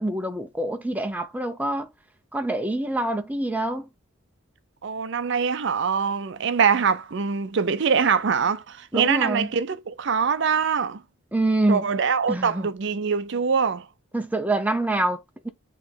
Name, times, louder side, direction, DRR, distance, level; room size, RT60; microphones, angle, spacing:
voice 1, 0.0-1.9 2.3-3.9 8.9-9.5 11.3-11.9 12.3-12.7 14.1-15.5, right 1 dB, 10° right, 0.7 m, -26 dB
voice 2, 4.8-11.0 11.7-13.9, right 6 dB, 60° right, 0.5 m, -23 dB
8.4 x 3.0 x 3.8 m
head